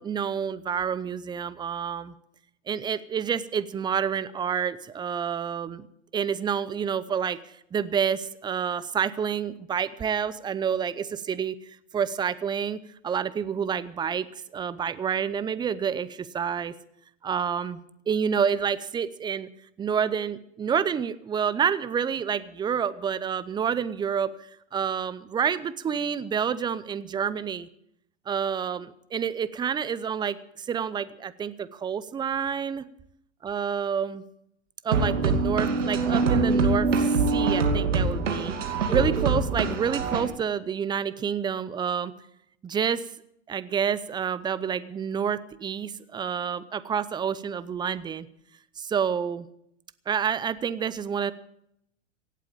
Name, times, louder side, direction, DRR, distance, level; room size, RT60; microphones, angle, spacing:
voice 1, 0.0-2.1 2.7-5.9 6.1-7.4 7.7-11.6 11.9-14.3 14.5-16.7 17.2-17.8 18.1-19.5 19.8-24.3 24.7-27.7 28.3-32.8 33.4-34.2 34.8-38.5 38.9-42.1 42.6-43.0 43.5-48.3 48.8-49.5 50.1-51.3, right 7 dB, 10° right, 16 dB, 0.6 m, -28 dB
sound 1, 34.9-40.2, right 4 dB, 85° right, 2.7 m, -24 dB
17.0 x 8.4 x 8.7 m, 0.75 s
hypercardioid pair, 120°, 36 cm